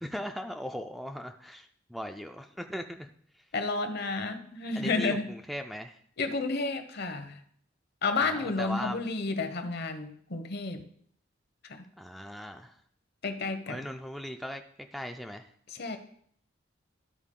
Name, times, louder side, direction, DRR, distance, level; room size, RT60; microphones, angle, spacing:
voice 1, 0.0-3.5 4.8-6.0 8.2-9.0 12.0-12.8 13.7-14.6 14.9-15.5, equal, ahead, 5 dB, 0.3 m, -39 dB
voice 2, 3.5-5.3 6.2-7.4 8.0-10.8 11.7-11.8 13.2-13.8 15.7-16.0, left 3 dB, 55° left, 8 dB, 0.8 m, -31 dB
12.5 x 4.4 x 3.7 m, 0.63 s
head